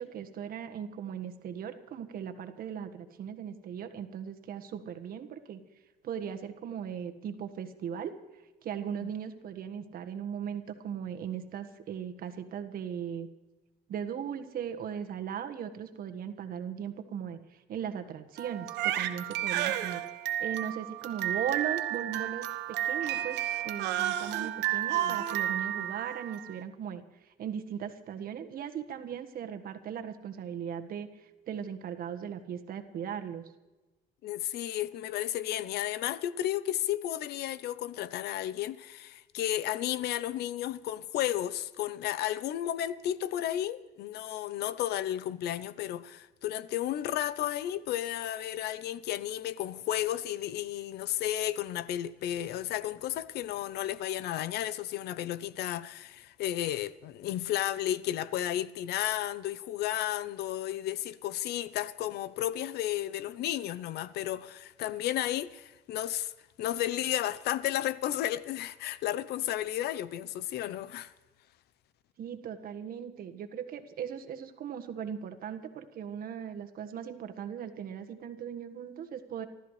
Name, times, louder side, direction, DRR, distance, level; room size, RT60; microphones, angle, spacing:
voice 1, 0.0-5.6 6.0-8.1 8.6-13.3 13.9-17.4 17.7-20.0 20.4-23.4 23.6-27.0 27.4-31.1 31.5-33.4 72.2-79.5, right 8 dB, 60° right, 1.6 m, -38 dB
Crying sobbing, 18.4-26.5, right 12 dB, 85° right, 1.2 m, -32 dB
voice 2, 34.2-66.3 66.6-71.1, left 12 dB, 75° left, 0.7 m, -33 dB
27.5 x 13.0 x 3.3 m
cardioid pair, 110°, 17 cm